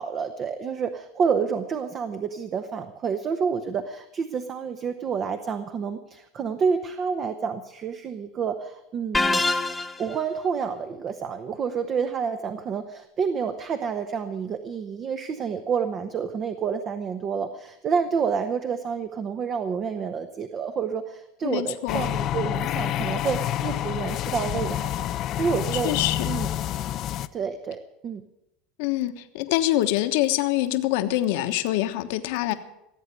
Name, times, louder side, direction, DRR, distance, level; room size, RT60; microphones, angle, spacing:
voice 1, 0.0-9.4 10.0-24.9 25.4-26.0 26.3-26.5 27.3-28.2, right 6 dB, 35° right, 8 dB, 1.0 m, -29 dB
sound 1, 9.1-10.2, left 3 dB, 10° left, 1.0 m, -24 dB
voice 2, 21.4-22.1 25.7-26.3 28.8-32.5, left 15 dB, 70° left, 8 dB, 1.2 m, -25 dB
sound 2, 21.9-27.3, left 12 dB, 45° left, 0.6 m, -28 dB
17.0 x 8.1 x 8.8 m, 0.86 s
supercardioid pair, 115°, 0 cm